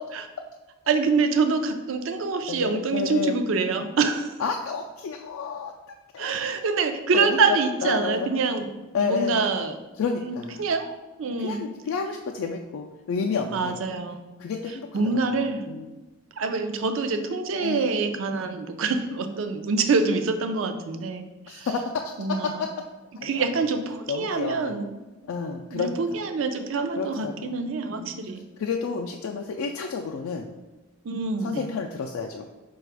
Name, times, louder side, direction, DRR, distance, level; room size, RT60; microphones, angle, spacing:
voice 1, 0.9-4.4 6.2-8.7 9.0-9.8 10.2-11.6 13.5-14.2 14.9-15.6 16.4-21.7 22.2-22.6 23.2-24.8 25.7-28.4 31.0-31.6, right 4 dB, 70° right, 7 dB, 0.4 m, -26 dB
voice 2, 2.5-3.3 4.4-6.4 7.1-8.3 8.9-9.5 10.0-10.6 11.4-13.8 14.4-15.0 15.7-15.9 17.6-18.0 21.5-22.1 22.4-22.7 23.2-23.4 24.1-24.7 25.2-26.0 27.0-27.6 28.0-28.1 28.6-30.5 31.4-32.5, left 5 dB, 75° left, 2 dB, 0.3 m, -30 dB
4.9 x 2.3 x 4.6 m, 1.1 s
head